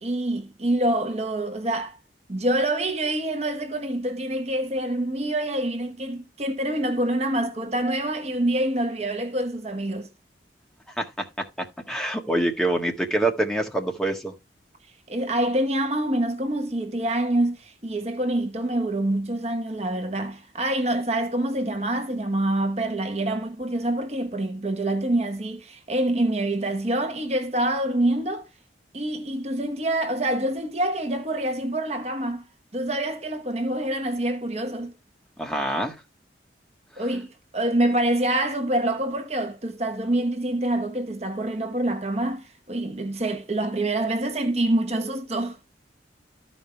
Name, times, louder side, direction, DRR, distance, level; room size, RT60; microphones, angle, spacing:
voice 1, 0.0-1.9 2.3-10.1 15.1-28.4 28.9-32.4 32.7-34.9 37.0-45.6, right 1 dB, 35° right, 1.2 m, -26 dB
voice 2, 11.9-14.3 35.4-36.0, right 1 dB, 5° left, 1.7 m, -25 dB
14.0 x 5.3 x 3.4 m
head